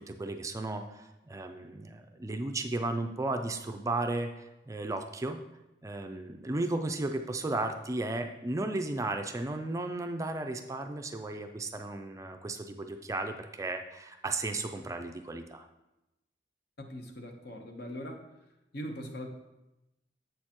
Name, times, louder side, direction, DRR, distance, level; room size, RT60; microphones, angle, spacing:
voice 1, 0.0-5.4 5.8-15.7, right 2 dB, 15° right, 5 dB, 0.4 m, -34 dB
voice 2, 16.8-18.2 18.7-19.3, equal, 60° left, 4 dB, 0.9 m, -41 dB
7.8 x 6.5 x 2.9 m, 0.95 s
head